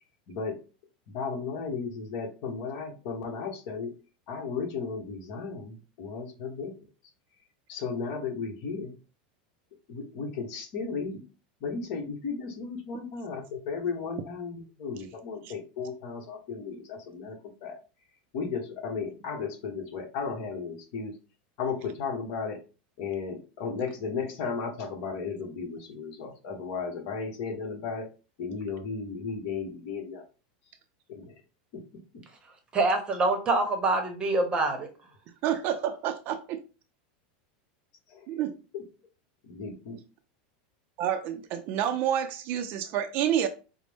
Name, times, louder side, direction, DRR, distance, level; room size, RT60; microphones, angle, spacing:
voice 1, 0.3-0.6 1.1-3.9 4.3-6.7 7.7-9.0 9.9-11.2 11.6-17.3 17.6-17.8 18.3-21.1 21.6-22.6 23.0-28.1 28.4-30.2 31.1-31.3 31.7-31.8 38.1-38.3 38.7-38.8 39.4-40.0, left 5 dB, 50° left, 1.1 m, -35 dB
voice 2, 32.7-34.9, right 2 dB, 20° right, 0.8 m, -25 dB
voice 3, 35.4-36.6 38.3-38.5 41.0-43.5, right 10 dB, 45° right, 0.5 m, -28 dB
5.0 x 2.1 x 3.4 m
supercardioid pair, 150°, 5 cm